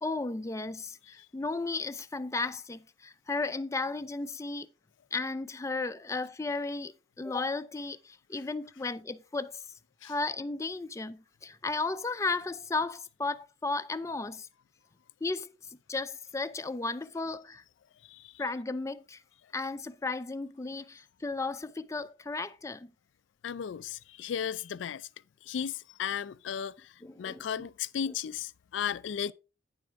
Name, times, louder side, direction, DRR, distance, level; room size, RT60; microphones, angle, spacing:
voice 1, 0.0-4.7 5.1-9.6 10.0-14.5 15.2-17.6 18.4-19.2 19.5-22.9 27.0-27.7 28.1-28.2, left 3 dB, 15° left, 0.4 m, -34 dB
voice 2, 23.4-25.1 25.4-29.3, left 8 dB, 80° left, 0.4 m, -35 dB
9.6 x 7.4 x 3.5 m
head